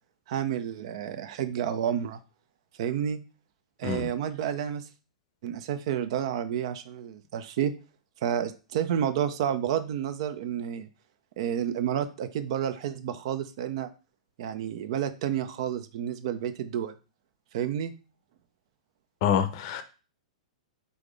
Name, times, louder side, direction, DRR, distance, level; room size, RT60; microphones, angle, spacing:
voice 1, 0.3-2.2 2.8-3.2 3.8-4.9 5.4-7.7 8.2-10.9 11.4-13.9 14.4-16.9 17.5-17.9, right 9 dB, 55° right, 0.5 m, -30 dB
voice 2, 19.2-19.8, left 9 dB, 50° left, 0.6 m, -26 dB
4.0 x 3.5 x 3.3 m
hypercardioid pair, 110°, 4 cm